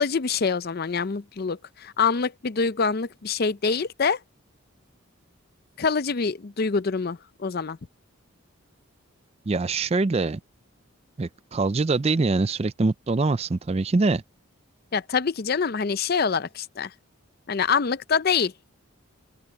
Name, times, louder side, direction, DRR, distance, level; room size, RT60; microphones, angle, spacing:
voice 1, 0.0-4.2 5.8-7.8 14.9-16.9 17.5-18.5, left 5 dB, 45° left, 0.5 m, -25 dB
voice 2, 9.5-10.4 11.2-14.2, right 3 dB, 30° right, 0.4 m, -24 dB
open air
head